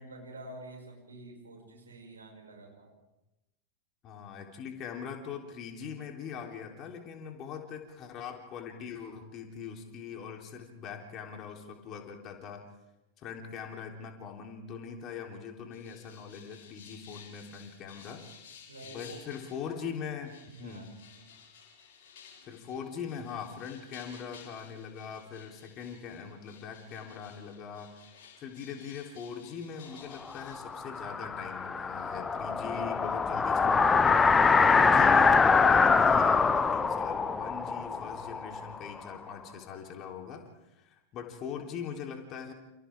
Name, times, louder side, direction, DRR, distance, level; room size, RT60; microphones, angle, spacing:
voice 1, 0.0-2.9 18.7-19.2 19.6-19.7 20.5-21.3, right 2 dB, 75° right, 0 dB, 6.4 m, -48 dB
voice 2, 4.0-12.6 13.2-18.2 18.8-20.9 22.4-27.9 28.4-34.2 34.7-40.4 40.7-42.5, left 7 dB, 35° left, 2 dB, 3.6 m, -41 dB
sound 1, 15.7-19.7 20.2-30.6, left 6 dB, 50° left, 7.8 m, -54 dB
sound 2, 30.4-39.1, left 5 dB, 15° left, 0.9 m, -24 dB
29.5 x 29.0 x 3.7 m, 0.97 s
figure-of-eight pair, 90°, 0 cm